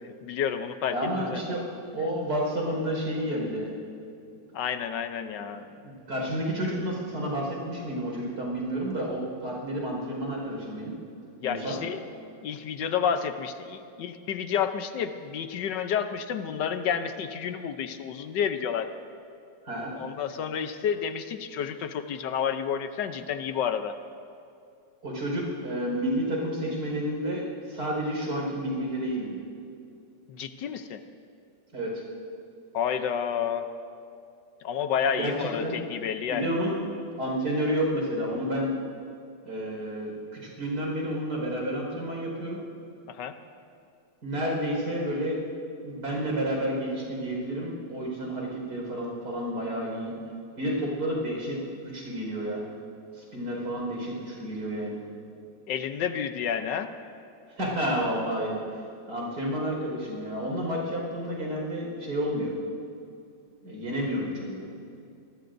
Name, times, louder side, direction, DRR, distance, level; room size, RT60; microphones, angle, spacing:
voice 1, 0.0-1.4 4.5-5.6 11.4-12.0 12.4-18.9 19.9-23.9 30.3-31.0 32.7-33.7 34.6-36.5 43.1-43.3 55.7-56.9, left 8 dB, 75° left, 9 dB, 1.4 m, -30 dB
voice 2, 0.9-1.6 1.9-3.7 5.3-10.9 11.4-11.8 19.7-19.9 25.0-29.4 31.7-31.9 35.2-35.8 36.3-36.8 37.2-38.8 39.4-42.6 44.2-45.4 45.8-50.2 50.5-52.6 53.2-55.0 57.6-58.6 59.1-62.5 63.6-64.6, equal, 65° right, -2 dB, 5.5 m, -30 dB
26.5 x 20.0 x 2.6 m, 2.4 s
omnidirectional pair, 1.9 m